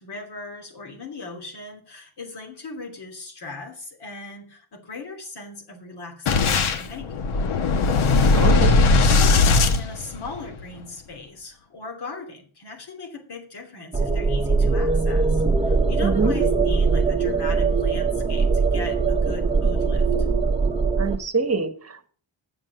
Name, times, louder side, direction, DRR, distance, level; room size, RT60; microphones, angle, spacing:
voice 1, 0.0-7.5 9.0-20.1, left 3 dB, 50° left, 3.0 m, -38 dB
Boom, 6.3-10.6, left 3 dB, 80° left, 1.3 m, -19 dB
voice 2, 8.3-8.8 16.0-16.4 21.0-22.1, right 4 dB, 30° right, 1.3 m, -25 dB
sound 1, 13.9-21.2, right 4 dB, 15° right, 1.0 m, -21 dB
9.9 x 7.4 x 6.5 m
wide cardioid pair, 145°, 50 cm